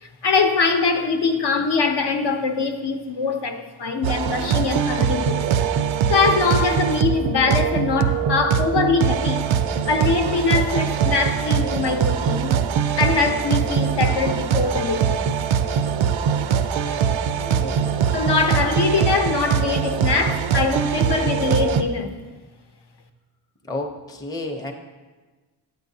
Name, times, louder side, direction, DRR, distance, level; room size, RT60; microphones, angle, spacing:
voice 1, 0.0-5.5 6.1-9.5 9.9-12.5 13.0-15.3 18.1-22.2, left 4 dB, 60° left, 0.7 m, -22 dB
sound 1, 4.0-21.8, right 7 dB, 85° right, 0.5 m, -22 dB
voice 2, 17.4-18.0 23.6-24.7, left 2 dB, 10° left, 0.6 m, -32 dB
8.4 x 8.2 x 2.7 m
wide cardioid pair, 120°, 46 cm